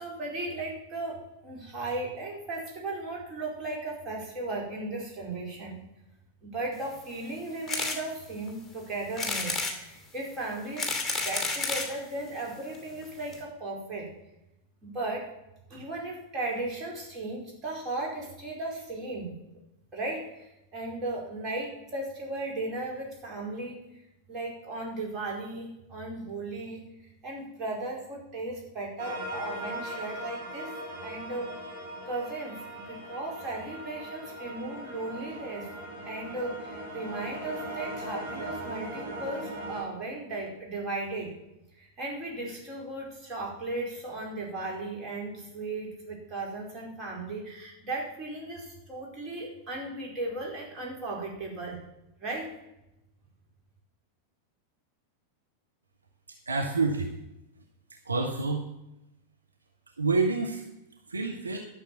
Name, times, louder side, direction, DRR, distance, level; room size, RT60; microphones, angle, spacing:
voice 1, 0.0-5.8 6.4-10.9 11.2-14.1 14.8-15.3 15.7-19.3 19.9-23.8 24.3-26.9 27.2-30.7 31.0-31.5 32.1-35.7 36.0-41.3 41.8-51.8 52.2-52.5, right 2 dB, 30° right, -2 dB, 4.8 m, -36 dB
sound 1, 7.7-8.0 8.5-8.6 9.2-9.8 10.5-11.9 12.7-12.8 13.0-13.1 13.3-13.4, left 3 dB, 5° left, 2.6 m, -30 dB
sound 2, 29.0-39.8, right 1 dB, 50° right, 5.2 m, -39 dB
voice 2, 56.5-57.1 58.0-58.7 60.0-60.6 61.1-61.6, right 3 dB, 80° right, 1 dB, 1.4 m, -27 dB
12.5 x 6.9 x 7.3 m, 0.89 s
figure-of-eight pair, 90°, 0 cm